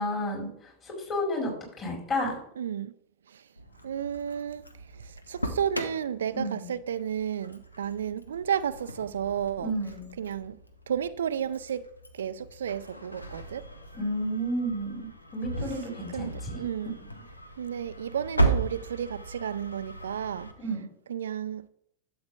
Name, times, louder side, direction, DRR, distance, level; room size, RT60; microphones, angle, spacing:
voice 1, 0.0-1.5 1.8-2.4 6.3-6.7 9.6-10.1 13.9-16.7 17.0-17.2 20.6-20.8, equal, 25° left, 4.6 m, -32 dB
voice 2, 2.6-2.9 3.8-4.6 5.3-9.7 10.2-10.6 10.9-11.8 12.1-13.6 16.1-16.9 17.6-20.5 21.1-21.7, right 8 dB, 65° right, 0.4 m, -32 dB
Engine starting, 3.6-20.5, right 2 dB, 85° left, 1.0 m, -36 dB
11.5 x 7.8 x 3.4 m
figure-of-eight pair, 90°, 0 cm